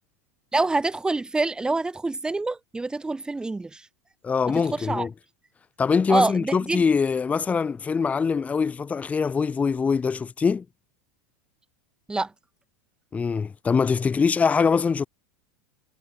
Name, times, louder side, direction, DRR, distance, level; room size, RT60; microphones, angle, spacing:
voice 1, 0.5-3.8 4.7-5.1 6.1-6.8 12.1-12.3, right 3 dB, 10° right, 2.4 m, -26 dB
voice 2, 4.2-5.1 5.8-10.6 13.1-15.1, left 5 dB, 15° left, 0.9 m, -23 dB
supercardioid pair, 125°, 9 cm